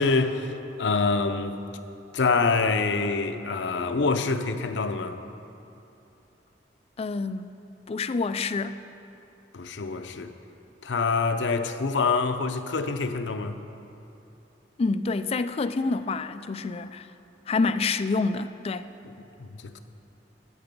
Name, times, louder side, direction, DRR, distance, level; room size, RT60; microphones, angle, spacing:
voice 1, 0.0-1.6 2.1-5.2 9.5-10.3 10.8-13.6 19.0-19.8, left 4 dB, 85° left, 8 dB, 0.6 m, -26 dB
voice 2, 7.0-7.5 7.9-8.8 14.8-17.1 17.5-18.9, left 3 dB, 35° left, 11 dB, 0.3 m, -27 dB
13.5 x 6.8 x 5.3 m, 2.9 s
head